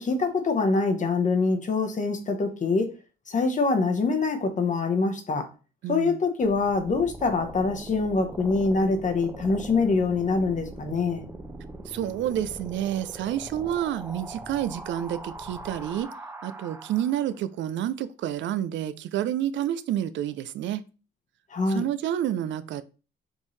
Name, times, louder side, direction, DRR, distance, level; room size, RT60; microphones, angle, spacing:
voice 1, 0.0-2.9 3.3-5.5 5.9-11.2 21.5-21.8, left 3 dB, 40° left, 0.9 m, -24 dB
voice 2, 5.8-6.2 11.9-16.1 16.4-20.8 21.7-22.8, right 11 dB, 70° right, 0.4 m, -29 dB
sound 1, 6.4-17.4, right 2 dB, 15° right, 0.6 m, -41 dB
5.2 x 2.7 x 3.1 m
cardioid pair, 90°, 20 cm